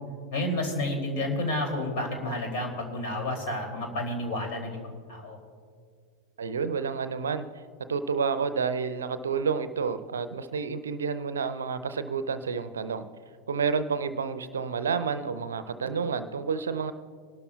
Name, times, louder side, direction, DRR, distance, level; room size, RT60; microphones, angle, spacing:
voice 1, 0.3-5.4, left 1 dB, 45° left, 2 dB, 2.9 m, -30 dB
voice 2, 6.4-7.5 7.9-13.0 13.5-16.9, right 5 dB, 65° right, 12 dB, 0.6 m, -29 dB
26.5 x 12.5 x 2.4 m, 2.1 s
figure-of-eight pair, 90°, 0 cm